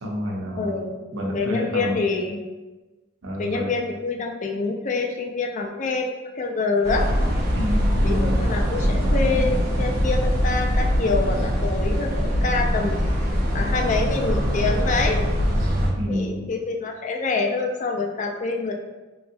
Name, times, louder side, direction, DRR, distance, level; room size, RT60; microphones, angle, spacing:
voice 1, 0.0-0.8 1.1-2.0 3.2-3.7 7.5-8.4 16.0-16.5, equal, 85° right, -1 dB, 0.6 m, -29 dB
voice 2, 0.6-0.9 1.3-2.4 3.4-7.1 8.0-13.0 13.5-15.3 16.1-18.7, left 3 dB, 35° left, 3 dB, 0.3 m, -26 dB
sound 1, 6.8-15.9, equal, 50° right, 0.6 m, -22 dB
3.1 x 2.7 x 2.6 m, 1.2 s
head